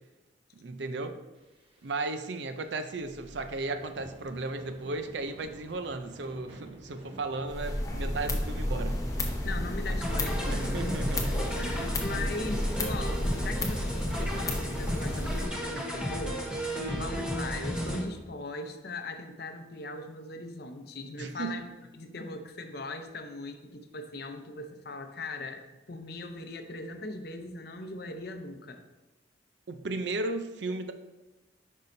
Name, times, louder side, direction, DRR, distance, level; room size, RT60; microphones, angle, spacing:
voice 1, 0.5-1.2 1.8-9.0 10.5-11.5 16.8-17.1 21.2-21.6 29.7-30.9, right 3 dB, 65° right, 8 dB, 0.5 m, -35 dB
sound 1, 1.3-16.8, right 1 dB, 30° right, 1.0 m, -49 dB
sound 2, 7.5-15.5, left 1 dB, 15° left, 0.7 m, -32 dB
voice 2, 9.4-11.0 11.2-21.6 21.9-25.6 25.9-28.8, left 2 dB, 55° left, 6 dB, 0.6 m, -39 dB
sound 3, 10.0-18.0, equal, 5° right, 1.0 m, -34 dB
9.4 x 5.5 x 2.7 m, 1.1 s
head